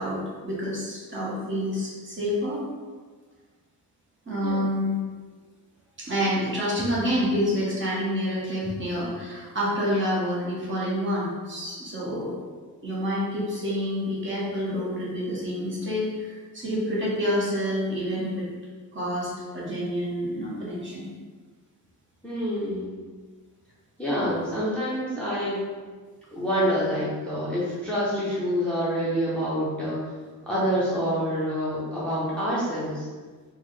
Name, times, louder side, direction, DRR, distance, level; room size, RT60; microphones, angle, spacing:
voice 1, 0.0-2.6 4.3-5.0 6.0-12.4 12.8-18.5 18.9-21.1, equal, 35° right, -6 dB, 0.9 m, -28 dB
voice 2, 22.2-22.9 24.0-25.6 26.3-30.0 30.5-33.1, equal, 5° left, -9 dB, 0.5 m, -27 dB
4.1 x 2.1 x 3.1 m, 1.4 s
wide cardioid pair, 180°, 36 cm